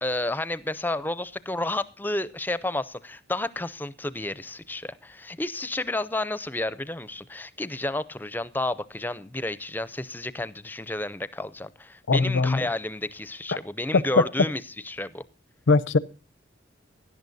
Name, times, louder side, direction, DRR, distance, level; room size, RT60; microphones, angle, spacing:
voice 1, 0.0-15.2, left 2 dB, 10° left, 0.4 m, -31 dB
voice 2, 12.1-12.6 15.7-16.0, left 3 dB, 80° left, 0.6 m, -21 dB
17.0 x 11.0 x 2.6 m
head